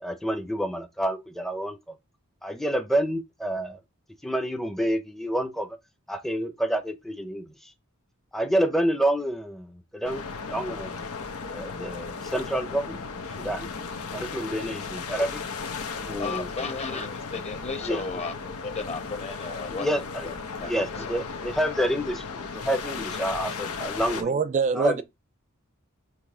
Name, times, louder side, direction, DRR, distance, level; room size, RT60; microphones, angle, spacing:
voice 1, 0.0-1.8 2.4-3.8 4.2-5.7 6.1-7.4 8.3-11.1 11.5-13.1 13.4-13.7 14.1-15.4 16.1-16.5 17.8-18.0 19.7-20.3 20.6-24.3 24.7-25.0, right 1 dB, ahead, 0.7 m, -28 dB
sound 1, 10.0-24.2, left 5 dB, 80° left, 1.1 m, -35 dB
voice 2, 16.2-19.9 20.2-20.3 20.6-20.7, left 4 dB, 30° left, 1.1 m, -34 dB
voice 3, 24.2-25.0, right 5 dB, 35° right, 0.3 m, -25 dB
6.1 x 3.1 x 4.9 m
head